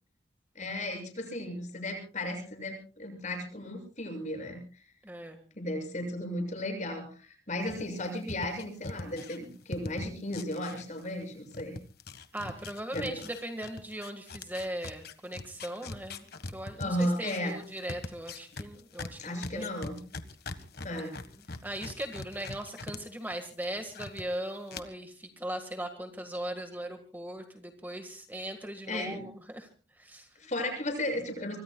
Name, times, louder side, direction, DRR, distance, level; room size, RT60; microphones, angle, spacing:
voice 1, 0.5-4.6 5.5-11.7 12.9-13.2 16.8-17.6 19.2-20.0 20.8-21.2 28.9-29.2 30.4-31.6, left 1 dB, 40° left, 4 dB, 6.8 m, -35 dB
voice 2, 5.0-5.4 12.3-16.3 16.5-19.7 20.9-21.1 21.6-29.7 30.0-30.3, right 1 dB, 10° right, 5 dB, 1.6 m, -39 dB
sound 1, 7.7-11.3 11.5-23.0 23.3-24.2 24.7-24.8, left 2 dB, 60° left, 1.5 m, -42 dB
25.5 x 24.0 x 2.3 m, 0.39 s
head